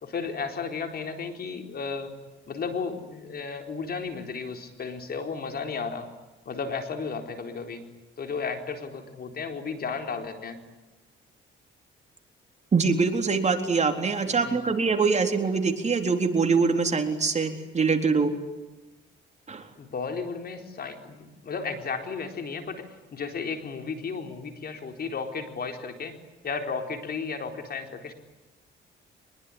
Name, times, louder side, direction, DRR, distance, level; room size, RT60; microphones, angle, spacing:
voice 1, 0.0-2.1 2.5-6.1 6.5-7.8 8.2-10.6 14.2-14.6 19.8-26.2 26.4-28.1, left 5 dB, 50° left, 6 dB, 4.3 m, -34 dB
voice 2, 12.7-18.3 19.5-19.7, right 4 dB, 35° right, 5 dB, 3.9 m, -24 dB
25.0 x 22.0 x 10.0 m, 1.1 s
cardioid pair, 90°, 20 cm